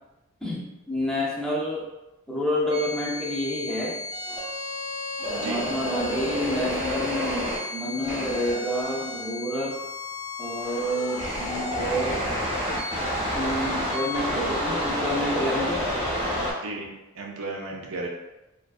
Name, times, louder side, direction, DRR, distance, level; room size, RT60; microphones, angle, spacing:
voice 1, 0.4-1.8 2.3-4.0 5.4-9.8 10.4-12.2 13.3-15.9, equal, 5° left, -4 dB, 0.3 m, -29 dB
sound 1, 2.7-16.5, left 1 dB, 30° right, 0.8 m, -30 dB
voice 2, 5.3-5.7 16.6-18.1, right 2 dB, 80° right, 0 dB, 0.5 m, -34 dB
2.5 x 2.2 x 2.3 m, 1.0 s
head